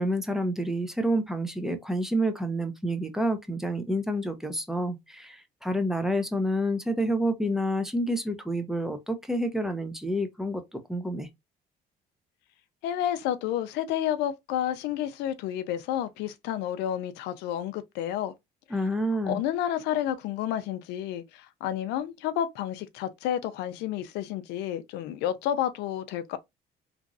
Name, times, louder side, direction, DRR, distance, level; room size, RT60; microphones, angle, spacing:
voice 1, 0.0-10.6 10.9-11.3 18.7-19.4, equal, ahead, 0.6 m, -28 dB
voice 2, 12.8-18.3 19.2-26.4, left 11 dB, 90° left, 0.4 m, -30 dB
3.0 x 2.5 x 2.5 m
cardioid pair, 110°, 17 cm